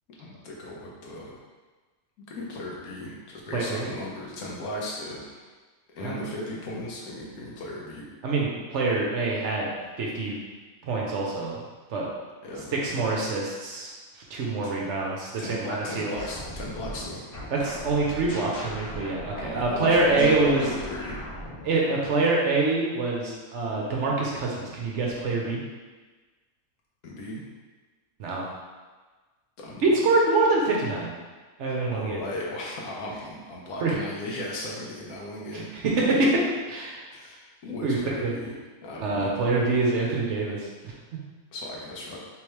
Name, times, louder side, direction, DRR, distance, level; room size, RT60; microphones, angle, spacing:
voice 1, 0.2-1.4 2.3-5.4 5.9-8.0 12.4-13.1 14.6-14.7 15.4-17.2 19.4-21.2 27.0-27.5 29.6-30.0 31.7-35.7 37.1-38.5 38.8-39.7 41.5-42.2, left 1 dB, 80° left, -3 dB, 1.3 m, -36 dB
voice 2, 3.5-3.9 6.0-6.2 8.2-9.7 10.0-10.4 10.9-11.5 11.9-12.1 12.8-13.9 14.3-16.1 17.5-20.6 21.6-25.6 28.2-28.5 29.8-31.1 31.6-32.2 33.8-34.0 35.5-37.0 37.8-38.4 39.0-40.9, right 3 dB, 65° right, -2 dB, 0.9 m, -25 dB
sound 1, 16.1-22.3, equal, 60° left, 1.4 m, -39 dB
3.5 x 3.2 x 3.1 m, 1.3 s
omnidirectional pair, 1.5 m